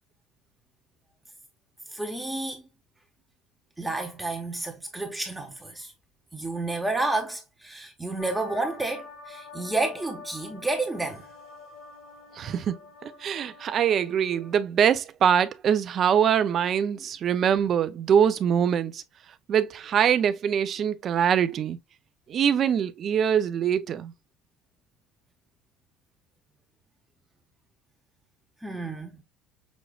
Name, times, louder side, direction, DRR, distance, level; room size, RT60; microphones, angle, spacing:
voice 1, 1.9-2.6 3.8-5.9 6.3-11.3 28.6-29.1, right 2 dB, 5° right, 0.8 m, -30 dB
sound 1, 8.2-14.6, left 3 dB, 55° left, 1.3 m, -46 dB
voice 2, 12.4-19.0 19.5-21.8 22.3-24.1, right 8 dB, 35° right, 0.5 m, -23 dB
6.2 x 3.0 x 2.3 m
cardioid pair, 165°, 0 cm